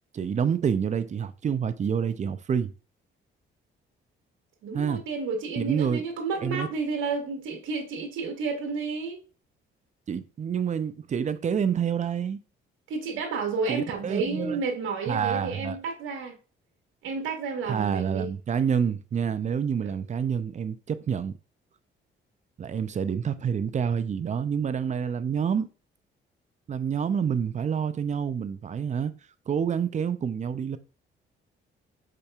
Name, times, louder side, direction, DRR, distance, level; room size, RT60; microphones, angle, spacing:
voice 1, 0.1-2.7 4.7-5.0 5.6-6.0 6.4-6.7 10.1-12.4 13.7-14.6 15.1-15.8 17.7-21.3 22.6-25.7 26.7-29.1 29.5-30.8, right 7 dB, 35° right, 0.5 m, -28 dB
voice 2, 4.6-9.2 12.9-16.3 17.0-18.4 19.8-19.9, right 4 dB, 80° right, 1.4 m, -31 dB
5.1 x 4.3 x 2.4 m
cardioid pair, 90°, 20 cm